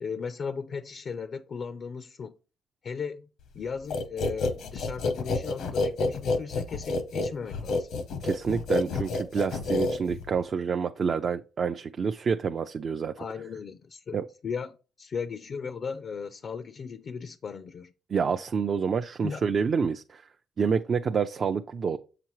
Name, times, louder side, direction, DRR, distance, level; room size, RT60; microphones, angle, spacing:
voice 1, 0.0-2.4 2.8-3.3 3.5-7.9 13.2-14.2 14.4-17.9 19.2-19.4, left 5 dB, 50° left, 0.4 m, -36 dB
sound 1, 3.9-10.4, left 3 dB, 80° left, 0.8 m, -29 dB
voice 2, 8.2-13.2 14.1-14.2 18.1-20.2 20.6-22.0, right 6 dB, 45° right, 0.4 m, -28 dB
7.5 x 5.9 x 3.0 m
cardioid pair, 90°, 0 cm